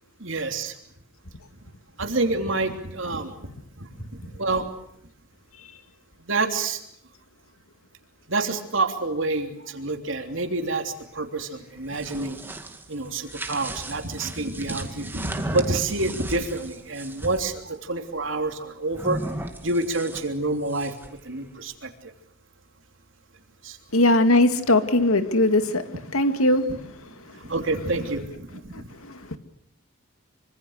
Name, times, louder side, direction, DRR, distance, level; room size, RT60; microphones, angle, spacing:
voice 1, 0.2-0.7 2.0-3.3 3.8-4.7 6.3-6.8 8.3-12.4 12.9-19.2 19.6-20.9 21.2-21.9 23.6-23.8 27.4-28.9, right 2 dB, 65° right, 6 dB, 3.2 m, -28 dB
sound 1, 11.7-17.5 18.9-21.2, right 1 dB, 10° right, 2.1 m, -36 dB
voice 2, 23.9-25.9 26.1-26.7 28.7-29.4, left 2 dB, 85° left, 9 dB, 2.3 m, -20 dB
25.5 x 25.0 x 6.6 m, 0.73 s
head